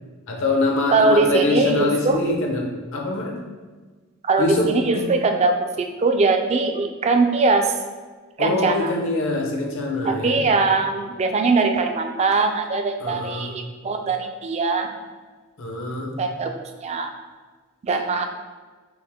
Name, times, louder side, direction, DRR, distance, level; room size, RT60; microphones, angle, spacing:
voice 1, 0.3-3.3 4.4-4.7 4.9-5.1 8.4-10.5 13.0-13.6 15.6-16.2, left 2 dB, 65° left, 0 dB, 0.8 m, -24 dB
voice 2, 0.9-2.2 4.2-5.7 6.0-7.7 8.4-8.9 10.0-14.9 16.2-16.5 16.8-17.1 17.8-18.3, right 3 dB, 30° right, 5 dB, 0.4 m, -21 dB
6.1 x 2.1 x 3.5 m, 1.4 s
head